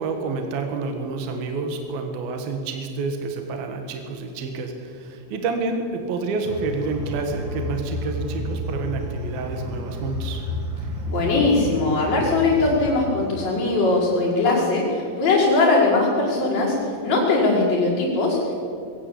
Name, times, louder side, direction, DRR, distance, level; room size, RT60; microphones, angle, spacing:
voice 1, 0.0-10.5, right 3 dB, 60° right, 5 dB, 3.0 m, -29 dB
sound 1, 6.4-12.9, left 1 dB, 35° right, 2.3 m, -31 dB
voice 2, 11.1-18.6, left 3 dB, 35° left, -9 dB, 6.3 m, -20 dB
22.5 x 18.0 x 8.4 m, 2.5 s
omnidirectional pair, 5.7 m